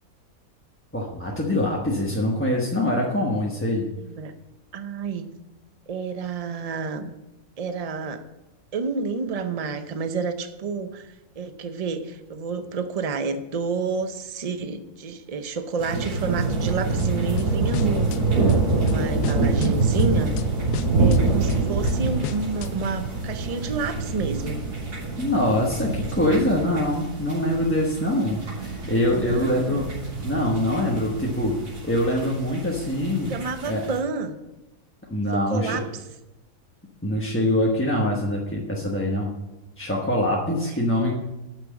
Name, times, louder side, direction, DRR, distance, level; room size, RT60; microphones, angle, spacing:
voice 1, 0.9-3.8 25.2-29.9 30.2-31.6 31.8-33.3 33.6-33.8 35.1-35.8 37.0-39.3 39.8-41.1, left 1 dB, 10° left, -3 dB, 1.0 m, -24 dB
voice 2, 3.9-4.3 4.7-5.3 5.9-7.1 7.6-8.2 8.7-20.3 21.0-24.6 29.2-29.8 33.3-34.4 35.3-36.0 40.5-40.8, right 5 dB, 45° right, 9 dB, 0.5 m, -30 dB
sound 1, 15.8-34.0, right 3 dB, 80° right, 3.9 m, -26 dB
sound 2, 17.0-18.2 18.5-19.7 20.0-20.4 20.7-22.7, left 9 dB, 90° left, 1.1 m, -32 dB
8.9 x 6.3 x 7.2 m, 1.0 s
omnidirectional pair, 1.6 m